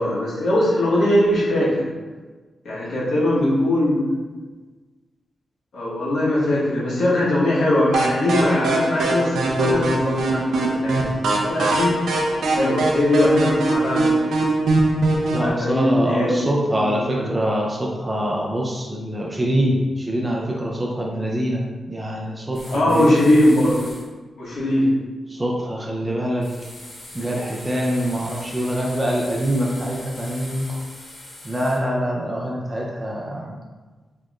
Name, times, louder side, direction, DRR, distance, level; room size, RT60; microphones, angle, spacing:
voice 1, 0.0-1.9 2.6-4.2 5.7-11.1 11.4-11.9 12.5-14.4 15.4-16.4 16.8-17.2 22.7-23.8 24.4-24.9, left 1 dB, 80° left, -8 dB, 1.2 m, -20 dB
sound 1, 7.9-15.5, right 2 dB, 90° right, 0.5 m, -21 dB
voice 2, 15.3-23.3 25.3-26.5 27.1-30.8 31.4-33.6, equal, 15° right, -2 dB, 0.4 m, -24 dB
sound 2, 22.5-24.1 26.4-31.8, left 1 dB, 55° left, 1.3 m, -40 dB
4.2 x 2.9 x 2.4 m, 1.3 s
cardioid pair, 95°, 0 cm